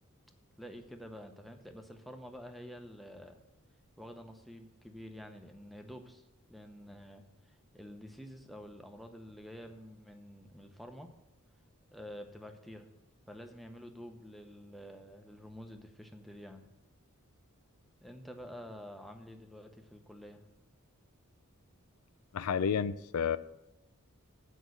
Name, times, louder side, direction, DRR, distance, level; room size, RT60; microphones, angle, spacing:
voice 1, 0.6-3.4 4.0-6.2 6.5-11.1 11.9-12.9 13.3-16.7 18.0-20.4, equal, ahead, 4 dB, 0.8 m, -49 dB
voice 2, 22.3-23.4, left 7 dB, 85° left, 15 dB, 0.4 m, -30 dB
8.3 x 5.4 x 7.8 m, 0.91 s
head